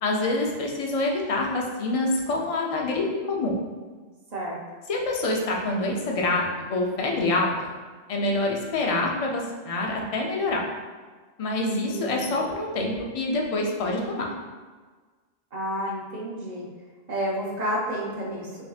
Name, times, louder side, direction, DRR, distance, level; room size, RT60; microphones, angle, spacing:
voice 1, 0.0-3.5 4.9-7.5 8.1-10.6 11.4-14.3, left 2 dB, 45° left, 0 dB, 0.5 m, -26 dB
voice 2, 11.8-12.3 15.5-16.7 17.1-18.5, equal, 40° right, -3 dB, 0.9 m, -30 dB
5.4 x 2.7 x 2.4 m, 1.4 s
omnidirectional pair, 1.1 m